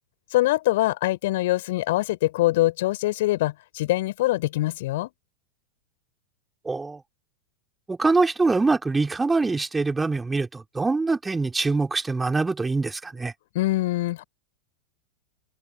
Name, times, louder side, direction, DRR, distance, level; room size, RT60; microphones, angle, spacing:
voice 1, 0.3-5.1 13.6-14.2, left 17 dB, 55° left, 5.2 m, -23 dB
voice 2, 6.7-7.0 7.9-13.3, right 3 dB, 10° right, 3.9 m, -24 dB
figure-of-eight pair, 90°, 0 cm